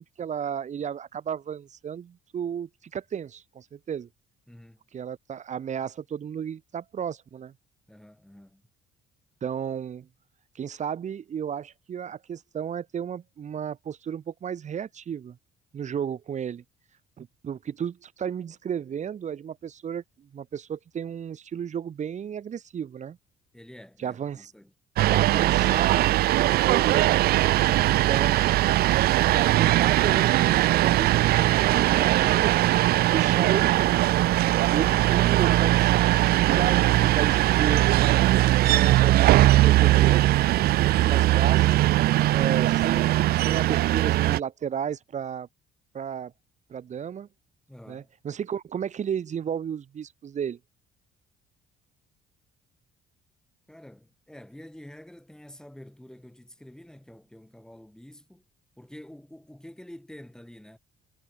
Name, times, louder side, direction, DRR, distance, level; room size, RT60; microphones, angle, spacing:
voice 1, 0.0-4.1 4.9-7.5 9.4-10.1 10.5-15.4 15.7-16.6 17.2-20.0 20.3-23.2 24.0-24.5 25.1-27.1 28.1-28.5 29.2-32.6 33.0-34.0 34.7-40.4 40.6-45.5 45.9-46.3 46.7-47.3 47.9-50.6, right 8 dB, 45° right, 2.9 m, -33 dB
voice 2, 4.5-4.8 7.9-8.6 23.5-24.7 27.5-28.2 47.7-48.1 53.7-58.4 58.8-60.8, left 1 dB, 5° left, 5.7 m, -48 dB
sound 1, 25.0-44.4, right 16 dB, 65° right, 0.5 m, -20 dB
cardioid pair, 110°, 17 cm